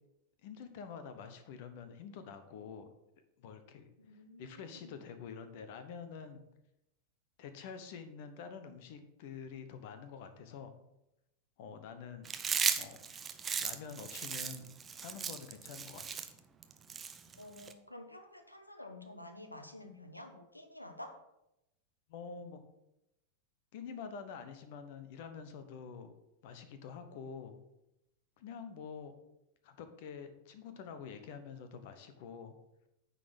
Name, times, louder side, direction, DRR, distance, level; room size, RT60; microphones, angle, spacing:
voice 1, 0.4-2.9 3.4-6.4 7.4-10.7 11.6-12.3 12.7-13.0 13.6-14.7 15.0-16.2 17.3-17.5 22.1-22.6 23.7-26.1 26.4-27.6 28.4-29.1 29.6-32.5, left 6 dB, 50° left, 9 dB, 1.0 m, -47 dB
voice 2, 4.0-5.0 17.4-21.2, left 1 dB, 85° left, 7 dB, 1.0 m, -50 dB
Chewing mastication, 12.3-17.7, right 6 dB, 20° right, 0.7 m, -36 dB
9.5 x 4.2 x 6.1 m, 0.87 s
figure-of-eight pair, 90°, 0 cm